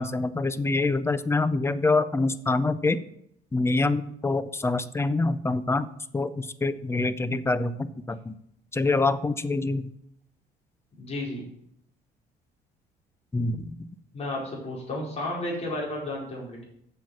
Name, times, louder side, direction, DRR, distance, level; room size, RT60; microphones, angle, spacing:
voice 1, 0.0-3.0 3.5-8.3 8.7-9.9 13.3-13.9, left 3 dB, 15° left, 14 dB, 0.5 m, -26 dB
voice 2, 11.0-11.4 14.1-16.7, left 1 dB, 40° left, -4 dB, 4.8 m, -32 dB
7.7 x 7.5 x 5.8 m, 0.73 s
cardioid pair, 110°, 17 cm